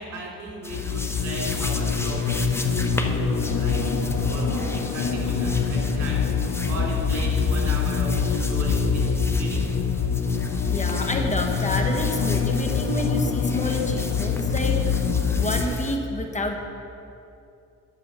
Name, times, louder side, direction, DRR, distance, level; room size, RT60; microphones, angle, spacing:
voice 1, 0.0-9.0 9.3-9.7, right 2 dB, 75° right, -3 dB, 3.1 m, -36 dB
sound 1, 0.6-16.0, left 2 dB, 10° left, 0.9 m, -37 dB
sound 2, 0.7-15.6, left 5 dB, 55° left, 0.8 m, -24 dB
voice 2, 10.7-15.0 15.4-16.6, left 2 dB, 25° left, 3 dB, 1.2 m, -29 dB
10.5 x 6.9 x 6.9 m, 2.7 s
cardioid pair, 90°, 30 cm